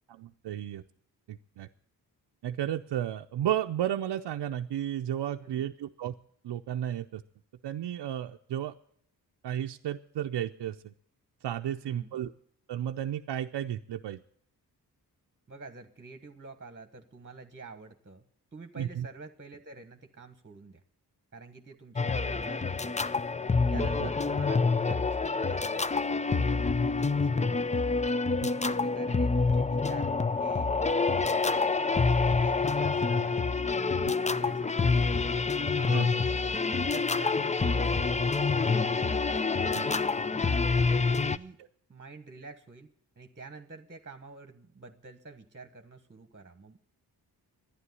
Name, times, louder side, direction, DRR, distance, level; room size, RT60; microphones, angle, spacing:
voice 1, 0.1-0.8 1.3-1.7 2.4-6.1 6.4-7.2 7.6-8.7 9.4-10.9 11.4-12.3 12.7-14.2 18.8-19.1 23.7-24.1 28.4-28.5 35.9-36.1 39.7-39.9, right 11 dB, 75° right, 5 dB, 0.6 m, -33 dB
voice 2, 11.8-12.2 15.5-18.2 18.5-20.8 21.3-23.3 23.7-26.5 27.0-27.7 28.5-30.1 30.4-30.7 31.1-33.4 33.8-35.3 35.6-36.1 36.7-39.1 39.6-40.0 41.1-41.6 41.9-42.9 43.2-46.9, right 3 dB, 25° right, 7 dB, 1.4 m, -48 dB
sound 1, 22.0-41.4, left 4 dB, 15° left, 0.5 m, -27 dB
11.5 x 10.0 x 9.6 m, 0.66 s
cardioid pair, 55°, 41 cm